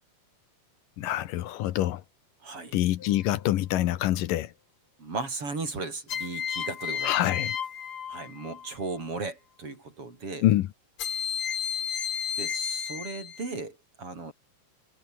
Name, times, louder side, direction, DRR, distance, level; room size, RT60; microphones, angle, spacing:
voice 1, 1.0-2.0 2.7-4.5 7.0-7.5 10.4-10.7, left 14 dB, 80° left, 2.6 m, -25 dB
voice 2, 2.4-2.8 5.0-7.2 8.1-10.5 12.4-14.3, right 3 dB, 40° right, 6.0 m, -36 dB
sound 1, 3.0-3.6 6.1-8.7 11.0-13.6, left 8 dB, 45° left, 2.2 m, -33 dB
omnidirectional pair, 4.0 m